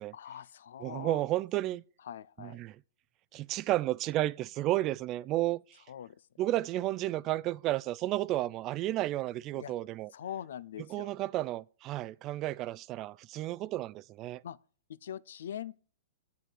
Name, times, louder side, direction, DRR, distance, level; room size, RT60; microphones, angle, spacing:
voice 1, 0.1-1.2 2.0-2.6 5.9-6.2 9.5-9.7 10.1-11.1 14.4-14.6 14.9-15.8, left 10 dB, 70° left, 0.5 m, -42 dB
voice 2, 0.8-1.8 2.4-2.8 3.3-5.8 6.4-10.1 10.9-14.4, right 15 dB, 35° right, 0.4 m, -32 dB
8.4 x 6.5 x 6.2 m
hypercardioid pair, 120°, 0 cm